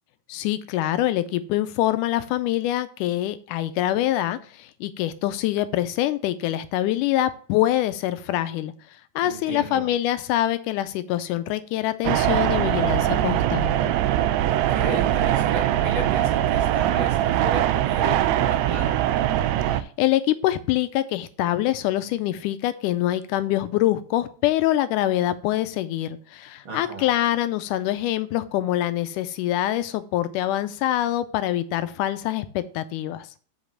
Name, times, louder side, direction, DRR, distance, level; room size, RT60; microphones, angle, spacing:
voice 1, 0.3-8.7 9.2-13.9 19.7-33.3, left 13 dB, 85° left, 12 dB, 2.1 m, -25 dB
voice 2, 9.2-9.9 14.4-19.0 26.6-27.1, right 2 dB, 50° right, 0 dB, 1.9 m, -34 dB
sound 1, 12.0-19.8, right 12 dB, 85° right, 1.5 m, -22 dB
5.7 x 5.3 x 6.1 m, 0.43 s
omnidirectional pair, 3.6 m